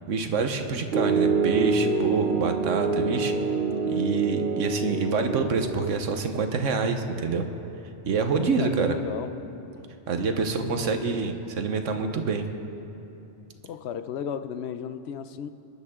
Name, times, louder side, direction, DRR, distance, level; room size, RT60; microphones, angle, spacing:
voice 1, 0.1-3.3 3.9-7.5 8.1-9.0 10.1-12.5, right 4 dB, 75° right, 6 dB, 1.3 m, -26 dB
Piano, 0.9-5.9, right 4 dB, 45° right, 0.9 m, -26 dB
voice 2, 8.3-9.3 10.6-11.0 13.6-15.5, left 8 dB, 65° left, 11 dB, 0.8 m, -35 dB
26.0 x 10.5 x 3.7 m, 2.9 s
omnidirectional pair, 1.3 m